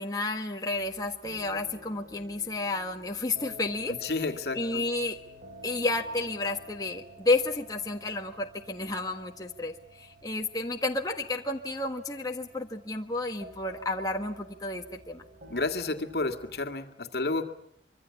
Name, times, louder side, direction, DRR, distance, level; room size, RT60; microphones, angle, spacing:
voice 1, 0.0-4.0 4.5-5.2 5.6-15.2, left 2 dB, 20° left, 2 dB, 1.5 m, -31 dB
sound 1, 0.7-16.8, left 1 dB, 50° right, 3.8 m, -51 dB
voice 2, 3.9-4.9 15.5-17.5, left 3 dB, 65° left, 6 dB, 2.1 m, -31 dB
25.0 x 24.5 x 8.4 m, 0.73 s
head